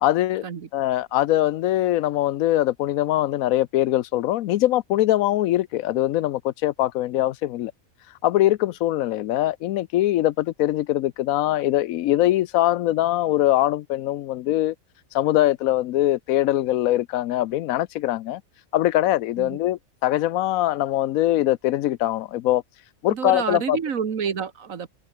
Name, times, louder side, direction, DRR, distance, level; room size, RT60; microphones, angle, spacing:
voice 1, 0.0-0.4 0.7-7.7 8.2-14.7 15.1-18.4 18.7-22.6 23.0-23.8, left 14 dB, 85° left, 1.0 m, -22 dB
voice 2, 23.1-24.9, right 6 dB, 75° right, 1.9 m, -28 dB
omnidirectional pair, 1.4 m